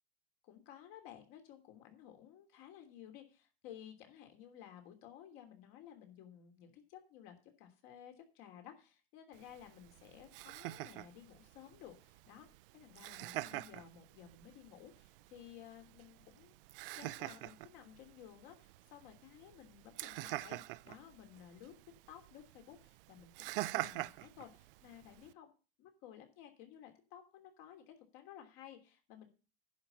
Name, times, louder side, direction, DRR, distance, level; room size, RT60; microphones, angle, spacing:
voice 1, 0.4-12.5 12.7-16.6 16.9-21.7 22.1-25.5 25.8-29.3, left 10 dB, 50° left, 5 dB, 3.0 m, -55 dB
Laughter, 9.3-25.3, right 18 dB, 70° right, 0.6 m, -46 dB
10.5 x 5.8 x 8.1 m, 0.34 s
supercardioid pair, 135°, 30 cm